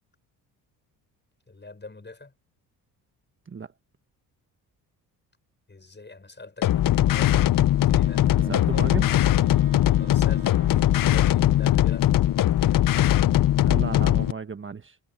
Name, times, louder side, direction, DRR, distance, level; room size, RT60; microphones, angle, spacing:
voice 1, 1.5-2.3 5.7-9.2 10.0-12.9, left 3 dB, 20° left, 6.6 m, -45 dB
sound 1, 6.6-14.3, left 13 dB, 45° left, 0.7 m, -20 dB
Wind instrument woodwind instrument, 7.9-12.5, right 17 dB, 75° right, 3.0 m, -47 dB
voice 2, 8.3-9.1 13.6-15.0, right 5 dB, 25° right, 1.3 m, -34 dB
hypercardioid pair, 55°, 47 cm